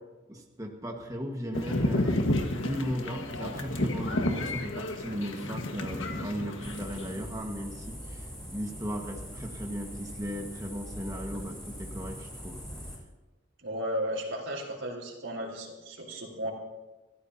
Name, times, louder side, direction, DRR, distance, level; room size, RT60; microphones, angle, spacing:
voice 1, 0.3-2.2 2.6-12.6, equal, 20° right, 0 dB, 1.6 m, -37 dB
sound 1, 1.5-7.2, left 1 dB, 90° left, 1.7 m, -31 dB
sound 2, 6.6-13.0, equal, 5° left, 6.1 m, -42 dB
voice 2, 13.6-16.5, equal, 90° right, 0 dB, 4.1 m, -34 dB
29.0 x 14.5 x 2.9 m, 1.1 s
head